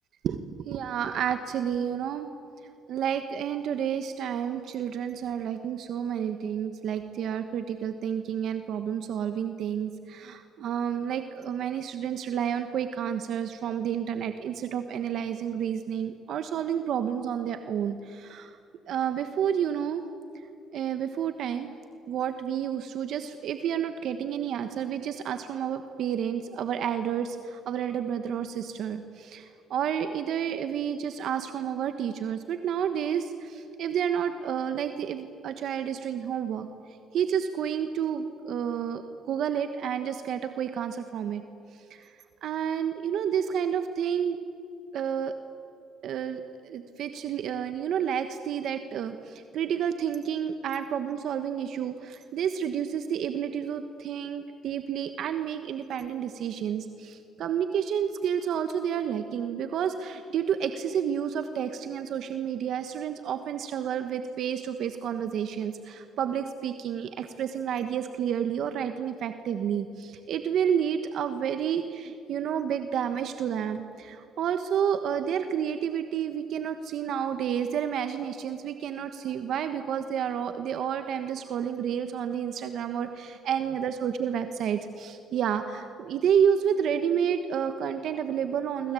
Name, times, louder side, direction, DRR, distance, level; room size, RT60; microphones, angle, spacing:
voice 1, 0.2-2.3 2.9-18.5 18.9-20.0 20.7-21.7 22.1-36.7 37.1-41.4 41.9-42.2 42.4-44.4 44.9-45.3 46.0-88.9, right 8 dB, 70° right, 8 dB, 1.3 m, -30 dB
25.5 x 25.0 x 8.4 m, 2.6 s
cardioid pair, 95°, 0 cm